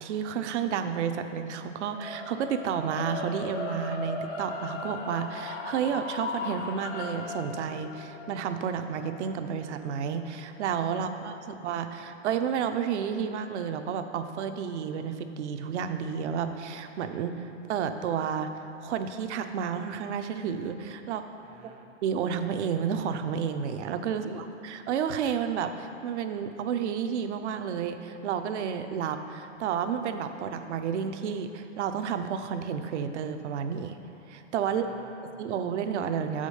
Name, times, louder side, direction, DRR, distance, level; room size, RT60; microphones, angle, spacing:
voice 1, 0.0-18.5 18.8-21.2 22.0-34.0 34.3-34.8 35.4-36.5, right 7 dB, 65° right, 8 dB, 0.6 m, -31 dB
sound 1, 1.9-12.1, left 3 dB, 65° left, 1.1 m, -38 dB
voice 2, 10.9-11.6 21.4-21.9 24.1-24.5 34.6-35.5, right 6 dB, 20° right, 4 dB, 0.4 m, -49 dB
6.2 x 5.0 x 5.4 m, 2.8 s
hypercardioid pair, 115°, 37 cm